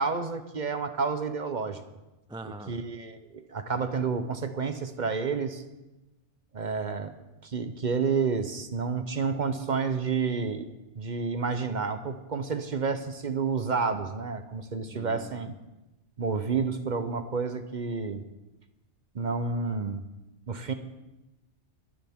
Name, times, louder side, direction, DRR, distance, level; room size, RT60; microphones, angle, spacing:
voice 1, 0.0-1.8 2.7-5.6 6.5-7.1 7.4-15.5 16.2-18.2 19.1-20.0 20.5-20.7, right 5 dB, 45° right, 9 dB, 0.9 m, -30 dB
voice 2, 2.3-2.8 14.9-15.5, right 2 dB, 5° right, 9 dB, 0.4 m, -42 dB
22.0 x 10.5 x 3.6 m, 1.0 s
omnidirectional pair, 1.2 m